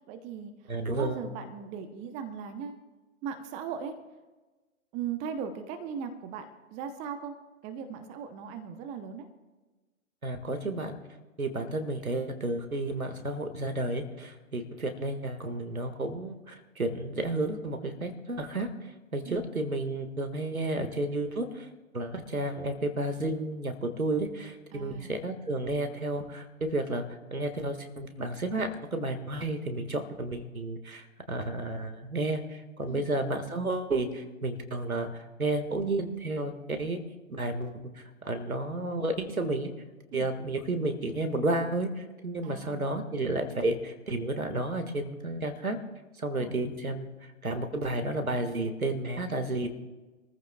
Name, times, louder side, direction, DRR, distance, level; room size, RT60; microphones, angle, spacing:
voice 1, 0.1-2.8 3.2-3.9 4.9-7.3 7.6-9.3 19.2-19.4 24.7-25.2 32.9-33.1 40.1-40.3 42.4-42.9 46.4-46.6, right 7 dB, 15° right, 8 dB, 0.8 m, -38 dB
voice 2, 0.7-1.2 10.2-11.0 11.4-18.7 19.1-21.7 21.9-27.0 27.3-35.1 35.4-37.0 37.3-37.9 38.2-39.7 40.1-45.8 46.2-47.1 47.4-49.7, right 2 dB, 80° right, 7 dB, 1.8 m, -31 dB
26.0 x 14.5 x 2.3 m, 1.2 s
figure-of-eight pair, 120°, 42 cm